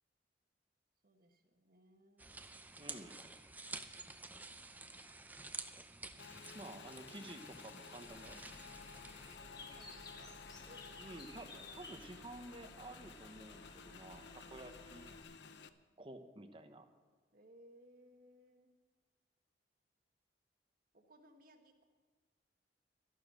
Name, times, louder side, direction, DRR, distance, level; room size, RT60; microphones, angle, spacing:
voice 1, 1.0-2.4 6.1-6.6 9.4-10.8 17.3-18.7 20.9-21.9, right 1 dB, 50° right, 5 dB, 1.5 m, -64 dB
sound 1, 2.2-9.4, right 3 dB, 10° right, 0.6 m, -51 dB
voice 2, 2.8-3.2 6.5-8.4 11.0-15.1 16.0-16.9, right 1 dB, 30° right, 7 dB, 1.0 m, -52 dB
Motorcycle / Engine, 6.2-15.7, left 5 dB, 65° left, 0.7 m, -54 dB
Bird, 8.0-15.2, left 2 dB, 25° left, 1.6 m, -56 dB
12.5 x 11.5 x 6.3 m, 1.5 s
head